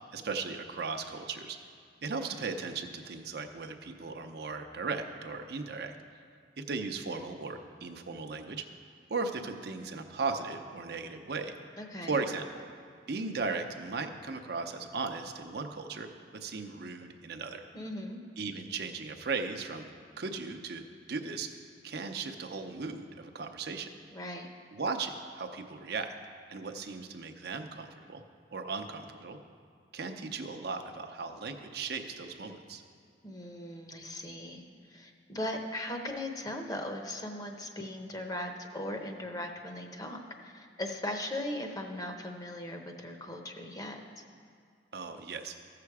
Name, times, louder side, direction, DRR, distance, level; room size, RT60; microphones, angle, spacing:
voice 1, 0.1-1.6 2.0-5.9 6.6-8.6 9.1-11.5 12.0-12.6 13.1-16.1 16.3-17.6 18.4-19.9 20.2-21.5 21.8-23.9 24.7-26.2 26.5-28.2 28.5-29.4 29.9-32.8 44.9-45.5, right 4 dB, 60° right, 5 dB, 0.7 m, -37 dB
voice 2, 11.8-12.2 17.7-18.2 24.1-24.5 33.2-34.6 34.9-44.2, left 1 dB, 20° left, 3 dB, 0.8 m, -38 dB
14.5 x 6.8 x 4.8 m, 2.2 s
head